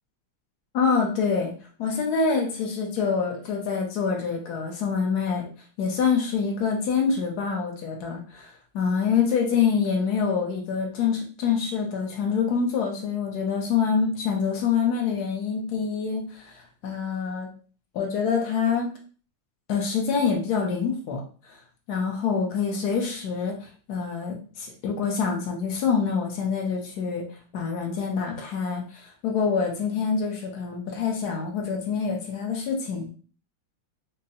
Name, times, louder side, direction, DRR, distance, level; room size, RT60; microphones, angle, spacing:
voice 1, 0.7-1.5 1.8-5.5 5.8-17.5 17.9-18.9 19.7-21.6 21.9-33.1, left 6 dB, 65° left, 2 dB, 1.0 m, -26 dB
5.3 x 2.2 x 2.7 m, 0.40 s
omnidirectional pair, 2.3 m